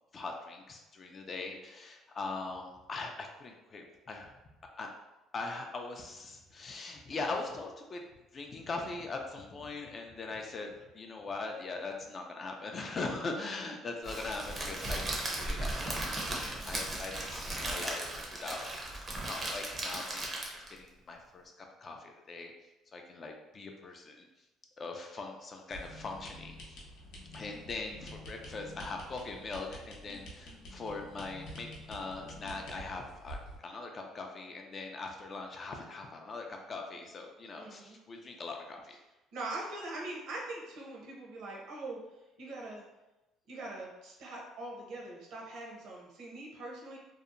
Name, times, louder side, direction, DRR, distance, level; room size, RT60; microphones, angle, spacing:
voice 1, 0.1-4.3 4.8-4.9 5.3-8.0 8.3-18.1 18.4-22.5 22.9-24.3 24.8-26.8 27.3-33.4 33.6-39.0, left 3 dB, 35° left, 2 dB, 0.3 m, -41 dB
Crackle, 14.0-20.8, right 1 dB, 25° right, 0.5 m, -36 dB
sound 1, 25.7-33.6, equal, 80° left, 0.7 m, -48 dB
voice 2, 37.6-38.0 39.3-42.0 42.4-42.8 43.5-47.0, right 2 dB, 65° right, -2 dB, 0.7 m, -42 dB
2.7 x 2.0 x 2.5 m, 1.0 s
cardioid pair, 125°, 0 cm